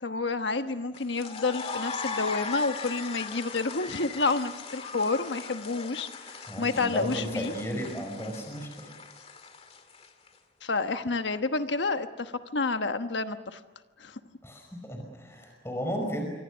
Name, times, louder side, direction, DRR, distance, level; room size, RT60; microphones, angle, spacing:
voice 1, 0.0-7.5 10.6-13.6 14.0-14.2, left 3 dB, 85° left, 8 dB, 1.2 m, -29 dB
sound 1, 0.9-10.3, left 4 dB, 35° left, 2.0 m, -39 dB
voice 2, 6.4-8.9 14.4-16.3, equal, 15° left, 3 dB, 5.3 m, -34 dB
28.0 x 24.5 x 6.3 m, 1.2 s
head